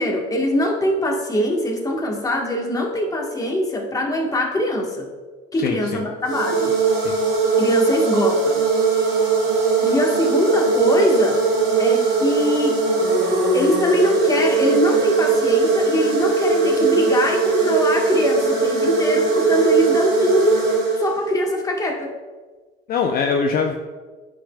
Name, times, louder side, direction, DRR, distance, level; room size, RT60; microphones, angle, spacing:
voice 1, 0.0-5.1 5.5-6.7 7.6-8.6 8.9-9.2 9.8-11.4 11.8-12.8 13.5-20.7 21.0-22.1, left 1 dB, 20° left, 0 dB, 1.4 m, -22 dB
voice 2, 5.6-6.0 7.0-7.2 22.9-23.7, left 5 dB, 50° left, 3 dB, 0.6 m, -22 dB
sound 1, 6.2-21.4, right 4 dB, 80° right, 1.8 m, -19 dB
9.9 x 5.0 x 2.3 m, 1.4 s
supercardioid pair, 85°, 19 cm